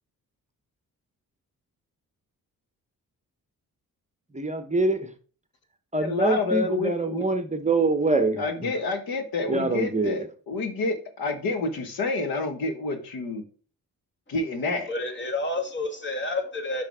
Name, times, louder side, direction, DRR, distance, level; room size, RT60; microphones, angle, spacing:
voice 1, 4.3-5.1 5.9-8.7 9.5-10.2, right 2 dB, 20° right, 9 dB, 0.9 m, -25 dB
voice 2, 6.0-7.2 8.4-13.4 14.3-14.9, left 3 dB, 85° left, 7 dB, 1.5 m, -28 dB
voice 3, 14.9-16.8, left 2 dB, 30° left, 5 dB, 1.9 m, -29 dB
6.4 x 5.6 x 3.4 m, 0.40 s
cardioid pair, 95°, 35 cm